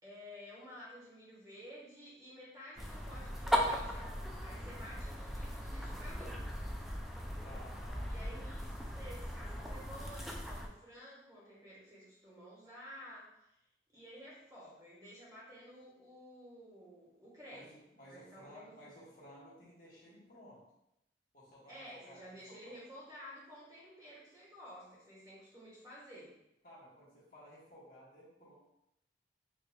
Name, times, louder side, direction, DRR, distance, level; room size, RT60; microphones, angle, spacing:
voice 1, 0.0-6.4 8.1-13.5 13.9-18.9 21.7-26.3, equal, 20° right, -7 dB, 1.4 m, -52 dB
sound 1, 2.8-10.7, equal, ahead, 0.3 m, -38 dB
voice 2, 7.4-8.1 17.5-20.7 21.3-22.8 26.6-28.5, equal, 50° left, -7 dB, 1.3 m, -56 dB
4.9 x 2.8 x 2.3 m, 0.84 s
head